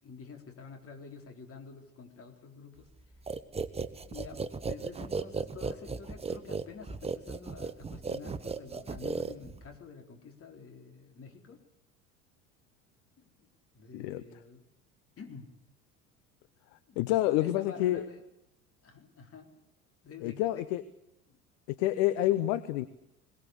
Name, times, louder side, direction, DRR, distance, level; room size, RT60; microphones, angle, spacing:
voice 1, 0.0-2.9 4.0-11.6 13.2-13.5 13.7-14.7 15.2-15.5 16.9-18.2 18.8-19.5 20.0-20.7 21.3-21.4, left 5 dB, 30° left, 5 dB, 4.2 m, -48 dB
sound 1, 3.3-9.8, right 4 dB, 15° right, 1.2 m, -36 dB
voice 2, 13.9-14.2 17.0-18.0 20.2-20.8 21.7-22.9, left 14 dB, 50° left, 14 dB, 1.1 m, -28 dB
22.0 x 19.0 x 8.2 m, 0.84 s
figure-of-eight pair, 70°, 43 cm